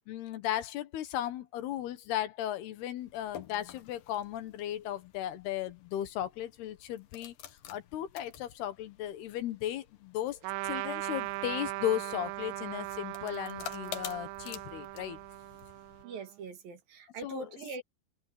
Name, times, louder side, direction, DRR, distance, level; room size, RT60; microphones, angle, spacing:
voice 1, 0.1-7.4 7.7-10.4 10.6-15.2 17.2-17.4, left 12 dB, 80° left, 3.4 m, -36 dB
sound 1, 3.0-16.0, left 10 dB, 65° left, 2.9 m, -50 dB
Trumpet, 10.4-16.3, right 21 dB, 85° right, 2.0 m, -39 dB
voice 2, 16.0-17.8, right 3 dB, 65° right, 4.0 m, -42 dB
omnidirectional pair, 4.5 m